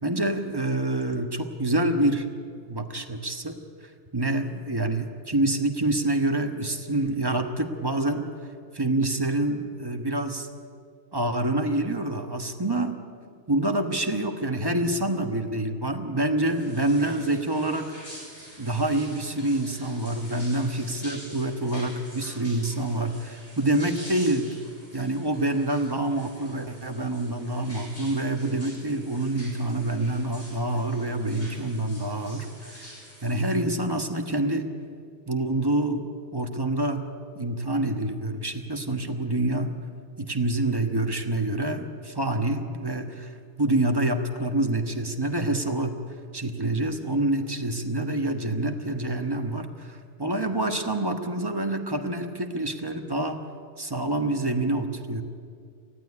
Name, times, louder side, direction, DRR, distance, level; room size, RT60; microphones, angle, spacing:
voice 1, 0.0-2.3 2.6-3.6 4.1-8.3 8.7-10.5 11.1-13.0 13.5-17.9 18.6-24.6 24.9-32.9 33.2-34.7 35.3-36.0 36.3-37.1 37.3-39.7 40.2-43.3 43.6-46.0 46.3-53.4 53.8-55.2, right 1 dB, 20° right, 5 dB, 1.3 m, -27 dB
sound 1, 16.4-33.6, equal, 55° left, 6.2 m, -47 dB
19.5 x 14.5 x 9.7 m, 2.2 s
omnidirectional pair, 1.2 m